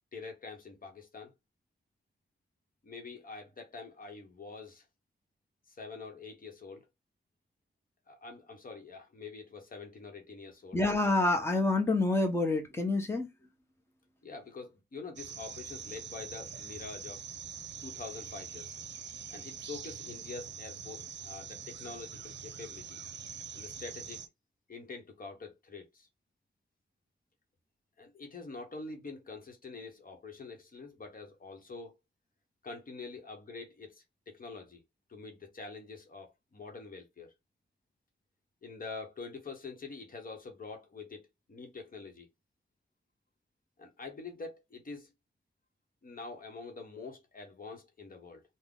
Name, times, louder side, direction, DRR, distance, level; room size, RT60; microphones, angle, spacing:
voice 1, 0.1-1.3 2.8-4.9 5.7-6.9 8.1-10.8 14.2-17.2 17.8-18.8 19.3-23.0 23.5-24.2 24.7-26.1 28.0-32.0 32.6-34.8 35.1-37.3 38.6-42.3 43.8-45.1 46.0-48.4, left 4 dB, 50° left, 0.9 m, -45 dB
voice 2, 10.7-13.3, left 2 dB, 15° left, 0.8 m, -27 dB
sound 1, 15.2-24.3, right 6 dB, 70° right, 0.5 m, -44 dB
3.7 x 2.1 x 3.6 m
wide cardioid pair, 95°, 19 cm